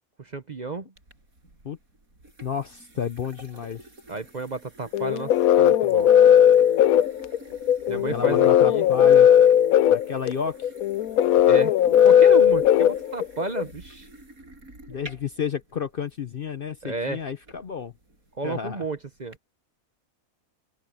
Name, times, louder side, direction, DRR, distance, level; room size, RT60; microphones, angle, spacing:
voice 1, 0.2-0.9 4.1-6.1 7.9-8.8 11.5-11.7 12.0-14.1 16.8-17.2 18.4-19.4, right 3 dB, 35° right, 0.8 m, -32 dB
sound 1, 1.0-19.4, right 1 dB, 85° right, 7.2 m, -49 dB
voice 2, 2.4-3.8 7.9-9.3 9.9-10.7 14.9-17.9 18.4-18.8, left 7 dB, 50° left, 0.7 m, -31 dB
sound 2, 4.9-13.6, left 10 dB, 85° left, 1.1 m, -17 dB
open air
omnidirectional pair, 1.5 m